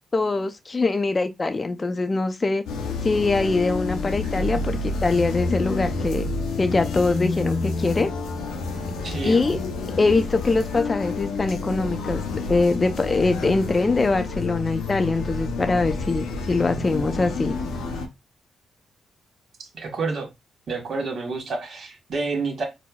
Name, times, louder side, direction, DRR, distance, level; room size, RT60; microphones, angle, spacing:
voice 1, 0.1-2.6 3.0-6.3 6.6-8.1 9.2-9.6 10.0-12.2 12.5-17.5, left 3 dB, 35° left, 0.5 m, -23 dB
sound 1, 2.7-18.1, left 3 dB, 85° left, 0.5 m, -29 dB
voice 2, 9.0-9.4 19.7-20.3 20.7-22.6, right 3 dB, 65° right, 1.2 m, -29 dB
4.4 x 2.1 x 2.3 m
supercardioid pair, 50°, 0 cm